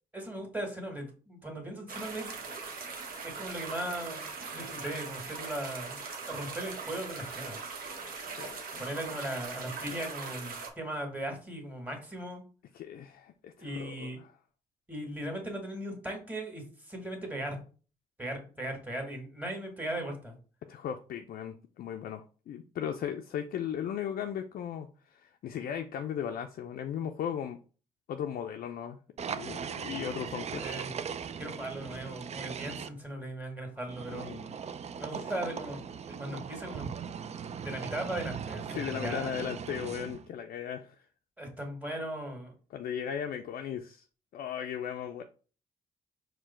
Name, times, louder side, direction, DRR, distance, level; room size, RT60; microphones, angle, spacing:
voice 1, 0.1-2.4 3.2-6.0 6.3-7.6 8.8-12.4 13.6-14.2 14.9-17.6 18.2-20.4 30.6-30.9 31.4-34.3 34.9-37.0 37.5-39.4 41.4-42.5, right 1 dB, 10° right, 2 dB, 1.9 m, -38 dB
sound 1, 1.9-10.7, right 4 dB, 65° right, 1.0 m, -40 dB
voice 2, 8.3-8.8 12.7-14.1 20.7-27.6 28.1-30.6 34.1-34.5 35.2-35.3 36.3-36.4 38.7-41.0 42.7-44.0 44.3-45.2, left 8 dB, 60° left, 6 dB, 0.4 m, -37 dB
sound 2, 29.2-32.9 33.9-40.3, right 7 dB, 40° right, 0.4 m, -39 dB
4.5 x 2.2 x 4.3 m, 0.38 s
hypercardioid pair, 45°, 16 cm